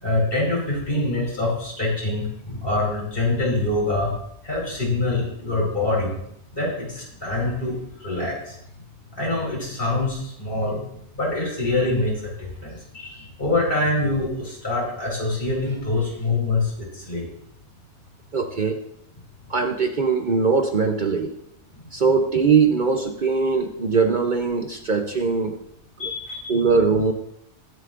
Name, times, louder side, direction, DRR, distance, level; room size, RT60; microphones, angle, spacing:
voice 1, 0.0-4.1 4.4-6.1 6.5-8.5 9.2-10.8 11.1-17.3 26.0-26.5, left 2 dB, 50° left, -4 dB, 5.0 m, -25 dB
voice 2, 18.3-18.8 19.5-21.4 21.9-25.6 26.0-26.1 26.5-27.1, right 5 dB, 45° right, 4 dB, 0.9 m, -21 dB
22.0 x 8.1 x 2.6 m, 0.75 s
omnidirectional pair, 1.2 m